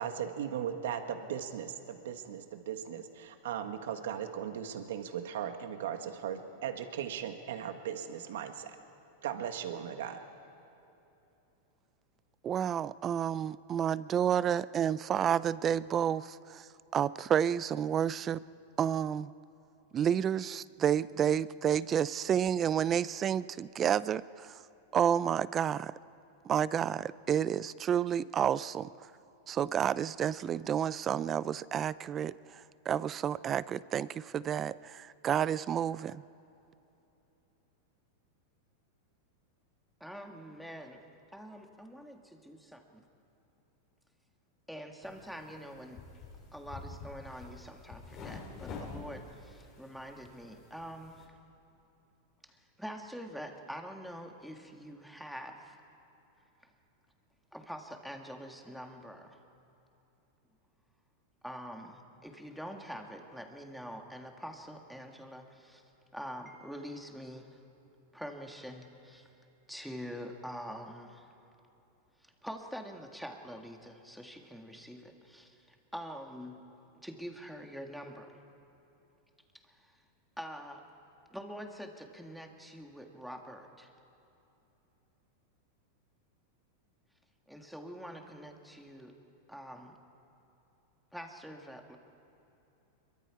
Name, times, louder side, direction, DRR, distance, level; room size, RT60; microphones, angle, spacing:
voice 1, 0.0-8.8 9.2-10.2, right 9 dB, 80° right, 7 dB, 1.5 m, -38 dB
voice 2, 12.4-16.7 16.9-18.4 18.8-19.3 19.9-24.6 24.9-25.9 26.5-28.9 29.5-36.2, right 9 dB, 25° right, 19 dB, 0.4 m, -30 dB
voice 3, 40.0-41.0 41.3-43.0 44.7-46.0 46.5-51.3 52.4-55.8 57.5-59.4 61.4-65.8 66.1-67.6 68.1-69.3 69.7-71.3 72.2-76.6 77.0-78.4 79.6-80.0 80.4-80.8 81.3-83.9 87.5-89.2 89.5-90.0 91.1-92.0, equal, ahead, 3 dB, 1.7 m, -45 dB
sound 1, 45.0-51.3, left 4 dB, 35° left, 3.5 m, -48 dB
25.5 x 23.0 x 4.8 m, 3.0 s
supercardioid pair, 150°, 0 cm